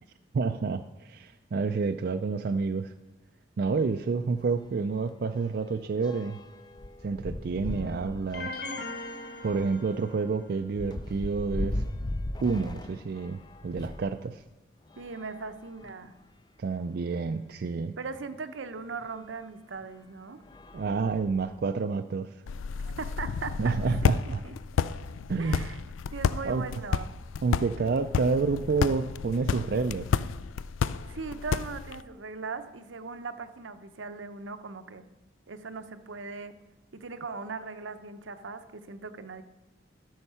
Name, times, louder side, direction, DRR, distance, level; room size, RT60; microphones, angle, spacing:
voice 1, 0.3-2.9 3.6-6.4 7.0-8.5 9.4-11.8 12.4-14.4 16.6-17.9 20.7-22.4 23.6-24.4 25.3-25.6 26.4-26.7 27.4-30.1, right 4 dB, 50° right, 7 dB, 0.3 m, -29 dB
sound 1, 3.8-3.9 4.2-4.3 4.6-14.1 14.8-16.2 16.9-17.0 17.2-17.3 19.0-19.2 19.8-20.0 20.4-21.7, left 1 dB, 20° left, 0.4 m, -39 dB
voice 2, 7.8-8.2 15.0-16.1 18.0-20.4 22.8-23.8 24.0-24.1 24.4-24.6 25.4-25.8 26.1-27.1 31.0-35.1 35.5-36.5 36.9-39.4, right 4 dB, 75° right, 10 dB, 0.7 m, -39 dB
sound 2, 8.3-10.4, left 2 dB, 50° left, 1.0 m, -39 dB
sound 3, 22.5-32.0, left 6 dB, 90° left, 0.4 m, -31 dB
12.5 x 6.4 x 5.6 m, 1.0 s
head